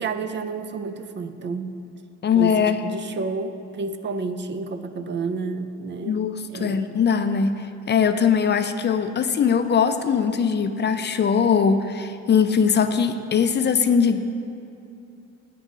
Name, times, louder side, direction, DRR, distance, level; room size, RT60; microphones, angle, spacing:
voice 1, 0.0-1.8 2.3-6.9, right 4 dB, 40° right, 10 dB, 0.4 m, -30 dB
voice 2, 2.2-2.8 6.1-14.2, left 6 dB, 35° left, 9 dB, 0.4 m, -21 dB
9.5 x 3.7 x 5.4 m, 2.7 s
cardioid pair, 90°, 30 cm